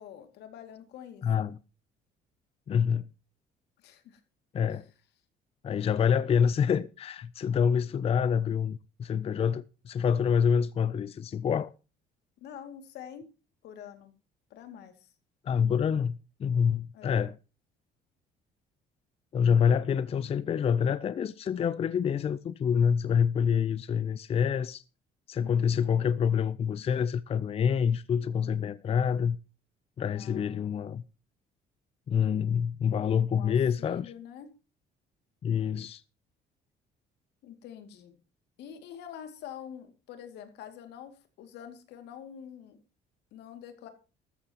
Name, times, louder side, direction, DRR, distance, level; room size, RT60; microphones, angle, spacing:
voice 1, 0.0-1.2 3.8-4.2 12.4-13.3 13.6-14.1 14.5-15.1 16.9-17.2 25.4-25.5 30.1-30.7 33.3-34.5 37.4-38.2 38.6-42.8 43.3-43.9, left 9 dB, 80° left, 2.4 m, -46 dB
voice 2, 1.2-1.6 2.7-3.1 4.5-4.9 5.6-11.7 15.4-17.4 19.3-24.8 25.3-29.4 30.0-31.0 32.1-34.1 35.4-36.0, left 7 dB, 35° left, 0.5 m, -27 dB
14.0 x 13.5 x 3.0 m
cardioid pair, 110°, 17 cm